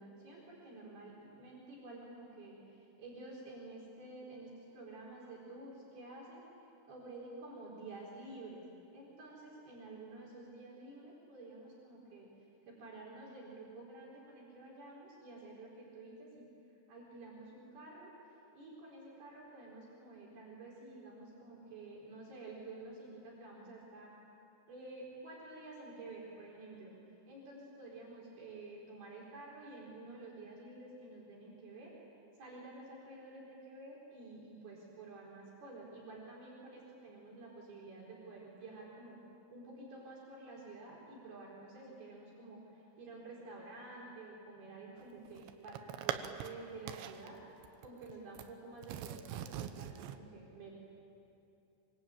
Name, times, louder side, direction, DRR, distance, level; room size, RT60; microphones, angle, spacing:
voice 1, 0.0-6.4 6.9-8.6 8.9-12.3 12.7-16.5 16.9-18.1 18.5-24.1 24.7-26.9 27.3-31.9 32.4-39.2 39.5-45.8 46.0-47.4 47.8-50.8, right 2 dB, 55° right, -4 dB, 6.4 m, -50 dB
sound 1, 45.0-46.5 46.9-47.3 47.6-48.5 48.8-50.2, right 10 dB, 75° right, 3.1 m, -42 dB
25.5 x 24.5 x 9.0 m, 2.7 s
omnidirectional pair, 5.4 m